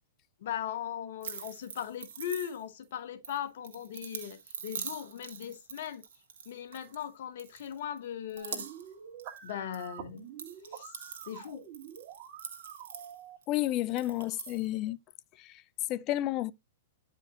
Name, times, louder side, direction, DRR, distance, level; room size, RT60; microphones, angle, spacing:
voice 1, 0.4-6.0 6.5-8.7 9.4-10.2 10.7-10.9 11.3-11.6, left 10 dB, 65° left, 1.0 m, -38 dB
sound 1, 1.2-2.8 3.2-7.1 7.4-8.0 8.3-8.9 9.2-9.9 10.2-13.5 13.9-14.7, right 7 dB, 70° right, 1.5 m, -44 dB
sound 2, 8.4-13.4, right 9 dB, 50° right, 1.9 m, -47 dB
voice 2, 13.5-15.0 15.4-15.5 15.9-16.5, left 15 dB, 40° left, 0.5 m, -31 dB
9.3 x 5.0 x 2.8 m
hypercardioid pair, 120°, 0 cm